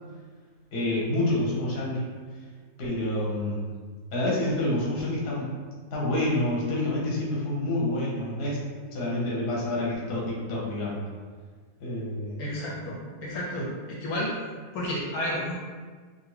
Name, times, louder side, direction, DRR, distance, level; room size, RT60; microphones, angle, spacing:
voice 1, 0.7-2.1 2.8-3.7 4.1-5.5 5.9-8.6 8.9-11.0 11.8-12.4, left 1 dB, 50° left, -5 dB, 0.9 m, -28 dB
voice 2, 12.4-14.4 14.7-15.5, left 1 dB, 75° left, -4 dB, 1.0 m, -31 dB
2.6 x 2.4 x 3.2 m, 1.5 s
omnidirectional pair, 1.7 m